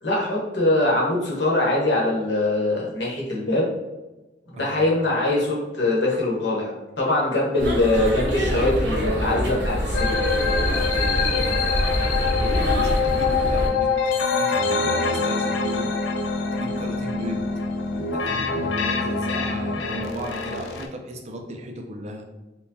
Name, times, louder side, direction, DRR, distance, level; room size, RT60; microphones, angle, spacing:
voice 1, 0.0-3.7 4.5-10.1, left 2 dB, 70° left, -4 dB, 1.0 m, -22 dB
sound 1, 7.6-13.7, equal, 80° right, 0.8 m, -25 dB
sound 2, 9.9-20.9, left 4 dB, 90° left, 0.4 m, -25 dB
voice 2, 10.9-14.0 14.3-16.0 16.5-17.5 17.9-22.2, right 1 dB, 35° right, 3 dB, 0.4 m, -35 dB
4.4 x 2.2 x 2.6 m, 1.1 s
head